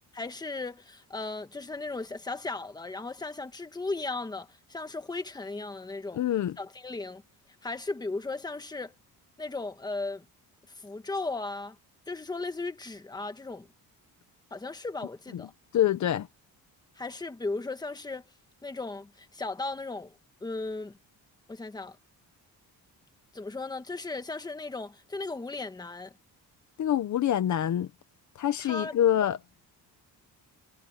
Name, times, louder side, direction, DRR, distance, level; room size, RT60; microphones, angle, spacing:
voice 1, 0.1-6.2 6.6-7.2 7.6-8.9 9.4-10.2 10.8-11.8 12.1-13.7 14.5-15.5 17.0-18.2 18.6-21.0 21.5-22.0 23.3-26.1 28.6-29.0, left 3 dB, 10° left, 1.3 m, -36 dB
voice 2, 6.2-6.6 15.7-16.3 26.8-27.9 28.4-29.4, left 11 dB, 50° left, 0.9 m, -25 dB
cardioid pair, 170°, 37 cm